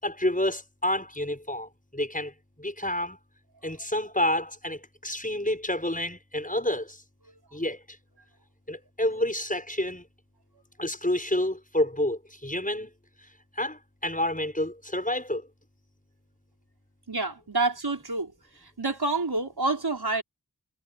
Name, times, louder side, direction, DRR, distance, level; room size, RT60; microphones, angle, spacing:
voice 1, 0.0-2.3 2.6-3.2 3.6-7.0 7.5-7.8 8.7-10.0 10.8-12.9 13.6-15.4, left 1 dB, 20° left, 6.8 m, -29 dB
voice 2, 17.1-20.2, right 3 dB, 80° right, 5.1 m, -28 dB
wide cardioid pair, 45°, 37 cm